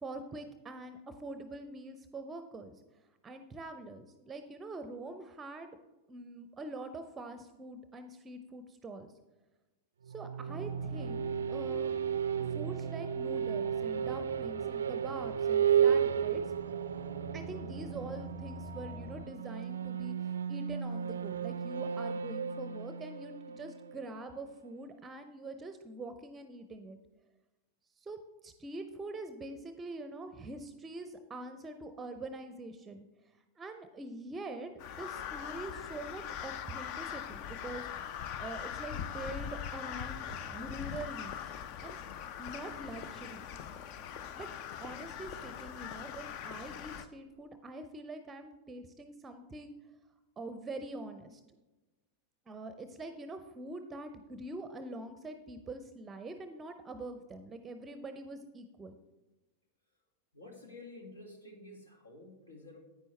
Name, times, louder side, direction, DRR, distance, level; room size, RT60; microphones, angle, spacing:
voice 1, 0.0-2.8 3.2-5.7 6.1-9.1 10.1-11.9 12.5-16.5 17.3-27.0 28.0-33.1 33.6-34.7 35.0-37.9 38.4-41.5 41.8-42.0 42.4-43.5 44.3-44.5 44.8-49.7 50.4-51.4 52.5-58.9, right 2 dB, 15° right, 9 dB, 0.6 m, -44 dB
sound 1, 10.0-24.7, right 8 dB, 70° right, 0.4 m, -33 dB
sound 2, 10.5-19.3, right 2 dB, 10° left, 1.2 m, -48 dB
Crow, 34.8-47.0, left 9 dB, 45° left, 0.5 m, -41 dB
voice 2, 60.3-62.8, left 2 dB, 75° left, 2 dB, 1.9 m, -50 dB
10.0 x 9.3 x 3.2 m, 1.1 s
figure-of-eight pair, 90°, 0 cm